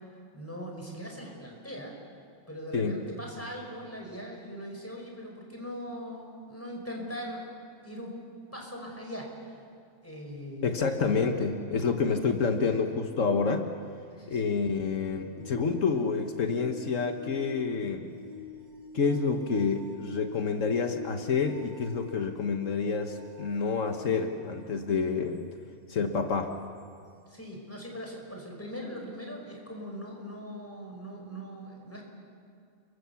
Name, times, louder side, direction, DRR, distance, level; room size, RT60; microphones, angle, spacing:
voice 1, 0.3-2.0 2.5-7.5 7.8-8.2 8.5-9.6 10.0-11.4 12.3-12.8 14.1-14.5 17.7-17.8 27.3-32.0, equal, 10° left, 0 dB, 5.4 m, -41 dB
voice 2, 10.6-13.7 14.3-18.1 18.9-25.5 25.9-26.5, left 5 dB, 75° left, 5 dB, 1.6 m, -28 dB
sound 1, 15.0-24.4 26.8-26.9, left 5 dB, 85° right, 5.1 m, -46 dB
29.5 x 24.0 x 7.1 m, 2.4 s
omnidirectional pair, 1.3 m